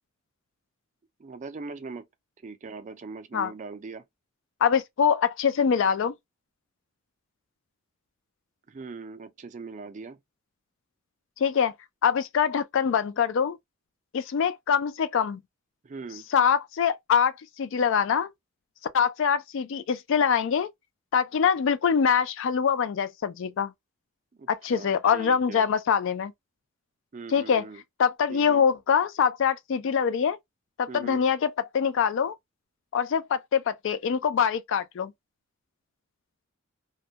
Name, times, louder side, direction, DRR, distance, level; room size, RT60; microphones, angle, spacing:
voice 1, 1.2-2.0 2.4-4.0 8.7-10.2 15.8-16.3 24.4-25.7 27.1-27.8 28.3-28.6 30.9-31.2, right 4 dB, 35° right, 0.4 m, -41 dB
voice 2, 4.6-6.1 11.4-11.7 12.0-13.6 14.1-15.4 16.3-17.3 17.6-18.3 18.9-20.7 21.1-23.7 24.5-26.3 27.3-27.7 28.0-30.4 30.8-32.3 32.9-35.1, left 7 dB, 60° left, 0.3 m, -24 dB
2.2 x 2.1 x 2.7 m
head